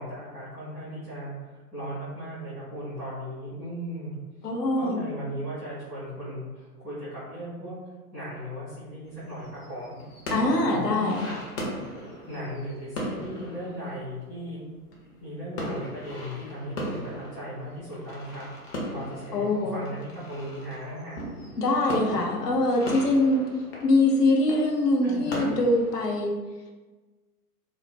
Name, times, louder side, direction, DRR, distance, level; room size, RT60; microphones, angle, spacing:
voice 1, 0.0-4.1 4.7-7.7 8.1-10.0 10.6-11.4 12.3-14.6 15.2-21.3 25.0-25.5, equal, 5° right, -15 dB, 0.3 m, -37 dB
voice 2, 4.4-5.0 10.3-11.3 19.3-19.8 21.6-23.4 23.8-26.3, left 2 dB, 85° left, 1 dB, 0.7 m, -23 dB
sound 1, 9.0-15.3 15.5-26.2, equal, 40° left, 0.7 m, -38 dB
2.3 x 2.0 x 3.2 m, 1.3 s
hypercardioid pair, 120°, 47 cm